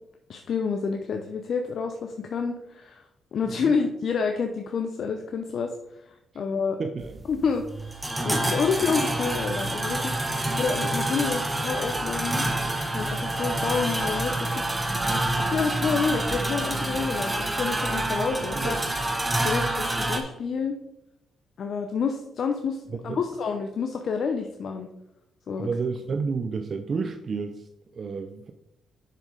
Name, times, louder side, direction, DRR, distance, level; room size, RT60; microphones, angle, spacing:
voice 1, 0.3-3.0 3.3-6.8 7.3-10.2 10.6-12.5 12.9-14.6 15.4-18.8 19.4-20.8 21.6-24.9 25.5-25.7, left 5 dB, 60° left, 4 dB, 0.7 m, -29 dB
voice 2, 3.4-3.7 6.8-7.2 18.5-18.8 23.1-23.2 25.6-28.5, right 5 dB, 50° right, 6 dB, 0.5 m, -31 dB
sound 1, 7.0-20.2, right 1 dB, 15° right, 1.2 m, -27 dB
6.4 x 6.3 x 3.8 m, 0.82 s
supercardioid pair, 65°, 0 cm